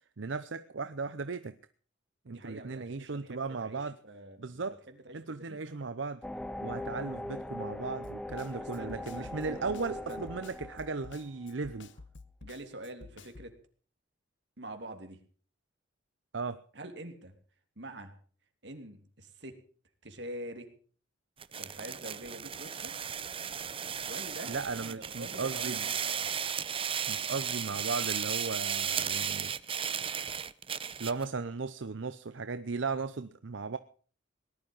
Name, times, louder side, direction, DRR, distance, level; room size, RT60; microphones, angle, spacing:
voice 1, 0.2-1.6 2.3-3.9 4.4-4.8 5.1-6.2 6.6-11.9 16.3-16.6 24.5-25.9 27.1-29.5 31.0-33.8, right 4 dB, 85° right, 12 dB, 0.7 m, -36 dB
voice 2, 2.3-5.8 8.5-9.8 10.1-10.2 12.4-13.6 14.6-15.2 16.7-17.4 17.8-18.2 18.6-19.6 20.0-20.7 21.5-22.9 24.1-26.3, right 1 dB, 65° right, 6 dB, 3.1 m, -46 dB
sound 1, 6.2-11.5, left 1 dB, 5° left, 0.9 m, -40 dB
Snare drum, 8.0-13.5, left 3 dB, 80° left, 1.1 m, -51 dB
sound 2, 21.4-31.2, right 8 dB, 30° right, 0.7 m, -35 dB
19.0 x 11.5 x 5.5 m, 0.43 s
head